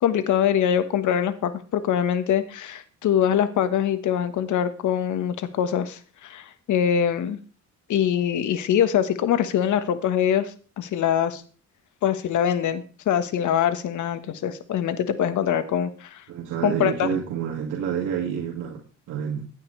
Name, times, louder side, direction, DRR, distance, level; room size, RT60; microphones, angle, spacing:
voice 1, 0.0-7.4 7.9-11.4 12.0-16.2 16.6-17.1, left 9 dB, 75° left, 11 dB, 1.5 m, -23 dB
voice 2, 16.3-19.4, right 8 dB, 85° right, -1 dB, 2.3 m, -28 dB
16.0 x 9.8 x 3.3 m, 0.39 s
cardioid pair, 90°, 30 cm